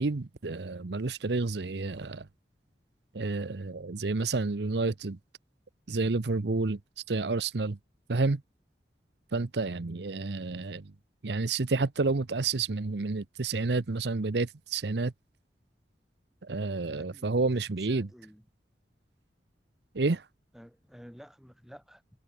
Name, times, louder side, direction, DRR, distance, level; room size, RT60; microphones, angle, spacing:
voice 1, 0.0-2.3 3.1-5.2 5.9-6.8 7.1-7.8 8.1-8.4 9.3-10.9 11.2-15.1 16.4-18.1 19.9-20.2, right 3 dB, 75° right, 0.8 m, -30 dB
voice 2, 17.0-18.5 20.5-22.2, equal, ahead, 7.4 m, -52 dB
head